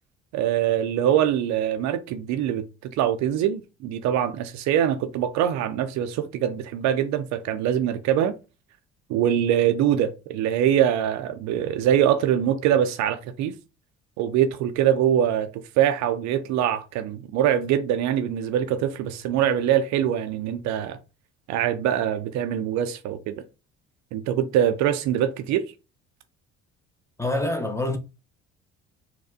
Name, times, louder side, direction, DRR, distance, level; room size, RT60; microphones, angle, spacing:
voice 1, 0.3-2.6 2.9-8.3 9.1-13.5 14.2-15.5 15.8-21.0 21.5-23.3 24.1-25.6, right 10 dB, 55° right, 0.5 m, -23 dB
voice 2, 27.2-28.0, left 1 dB, 10° left, 0.7 m, -26 dB
4.1 x 2.3 x 2.6 m
hypercardioid pair, 55°, 34 cm